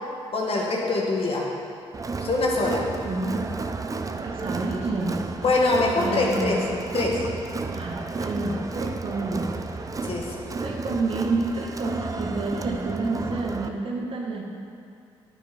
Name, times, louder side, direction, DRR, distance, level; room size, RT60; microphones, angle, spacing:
voice 1, 0.3-1.5 2.2-2.8 5.4-6.6 6.9-7.3 10.0-10.5, left 3 dB, 55° left, -2 dB, 2.0 m, -24 dB
Crowd, 1.9-13.7, right 3 dB, 30° right, 0.6 m, -32 dB
voice 2, 2.9-3.4 4.2-5.2 5.9-6.6 7.7-9.9 10.6-14.4, right 3 dB, 50° right, -1 dB, 1.7 m, -29 dB
9.2 x 8.2 x 4.5 m, 2.4 s
supercardioid pair, 55°, 12 cm